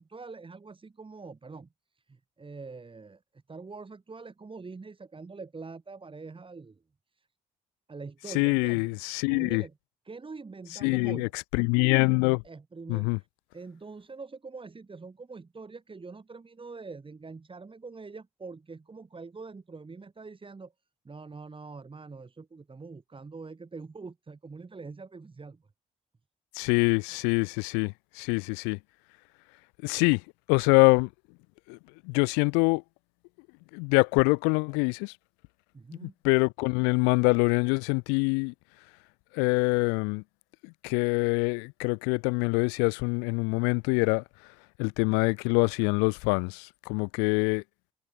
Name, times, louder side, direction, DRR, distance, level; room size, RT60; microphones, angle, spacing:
voice 1, 0.0-1.7 1.9-6.8 7.2-7.3 7.9-8.9 9.3-9.7 10.0-11.3 12.4-13.3 13.5-20.7 21.0-25.6 35.7-36.1, right 4 dB, 30° right, 4.2 m, -44 dB
voice 2, 8.3-9.6 10.8-12.4 12.9-13.2 26.5-28.8 29.8-30.2 30.5-31.1 31.7-31.8 32.0-32.8 33.7-35.1 36.0-38.5 39.3-40.2 40.6-44.2 44.8-47.6, left 38 dB, 90° left, 1.2 m, -25 dB
supercardioid pair, 60°, 17 cm